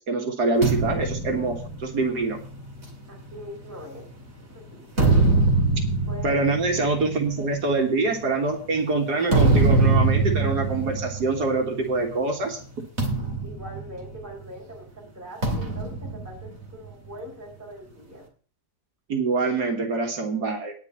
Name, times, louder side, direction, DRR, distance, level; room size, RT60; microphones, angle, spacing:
voice 1, 0.1-2.4 6.2-12.6 19.1-20.7, right 3 dB, 75° right, 3 dB, 2.1 m, -25 dB
sound 1, 0.6-4.2 4.7-12.2 12.4-12.6 13.0-14.6 15.4-17.2, right 3 dB, 40° right, 2.9 m, -24 dB
voice 2, 3.1-4.0 4.7-4.9 5.4-5.5 6.1-6.4 13.4-14.9 15.1-18.3, equal, 10° right, -3 dB, 4.0 m, -41 dB
9.8 x 5.8 x 8.5 m, 0.41 s
omnidirectional pair, 1.8 m